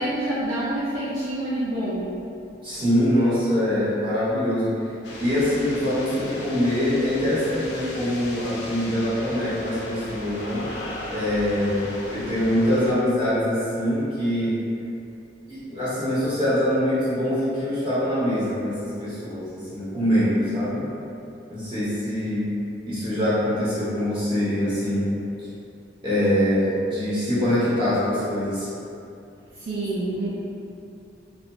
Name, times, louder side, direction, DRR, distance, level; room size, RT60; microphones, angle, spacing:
voice 1, 0.0-2.2 29.5-30.3, right 1 dB, 80° right, -10 dB, 0.5 m, -27 dB
voice 2, 2.6-4.7 5.2-10.7 11.1-11.8 12.1-14.6 15.5-20.8 21.5-22.5 22.8-25.1 26.0-28.7, equal, 25° right, -12 dB, 0.9 m, -24 dB
sound 1, 5.0-12.9, left 1 dB, 65° left, 0.4 m, -37 dB
2.6 x 2.1 x 2.9 m, 2.7 s
head